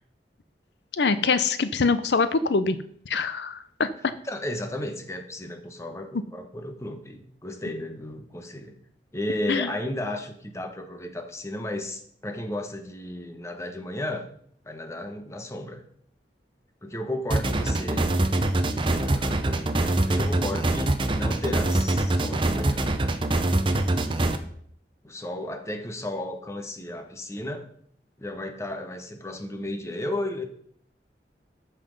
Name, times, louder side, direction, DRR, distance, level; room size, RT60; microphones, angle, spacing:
voice 1, 1.0-2.8 3.1-3.9 9.5-9.7, left 4 dB, 75° left, 12 dB, 0.6 m, -24 dB
voice 2, 4.2-8.8 9.1-14.3 14.6-15.9 16.8-18.1 18.9-22.9 24.0-24.2 25.0-27.7 28.2-30.4, left 1 dB, 15° left, 6 dB, 1.1 m, -34 dB
sound 1, 17.3-24.4, right 1 dB, 30° right, 0.7 m, -24 dB
13.0 x 5.8 x 5.3 m, 0.64 s
head